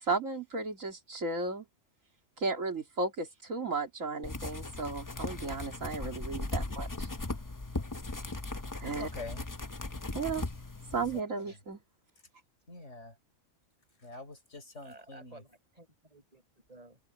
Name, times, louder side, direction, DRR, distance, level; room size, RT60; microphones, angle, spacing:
voice 1, 0.0-1.6 2.4-7.1 8.8-9.1 10.1-10.4 10.9-11.8, right 3 dB, 90° right, 3.1 m, -34 dB
sound 1, 4.2-11.2, left 2 dB, 20° left, 0.7 m, -38 dB
voice 2, 8.8-9.4 10.9-11.6 12.7-13.1 14.0-15.4, left 3 dB, 65° left, 4.9 m, -46 dB
voice 3, 14.8-16.4 16.7-17.0, right 2 dB, 30° right, 7.3 m, -54 dB
omnidirectional pair, 1.3 m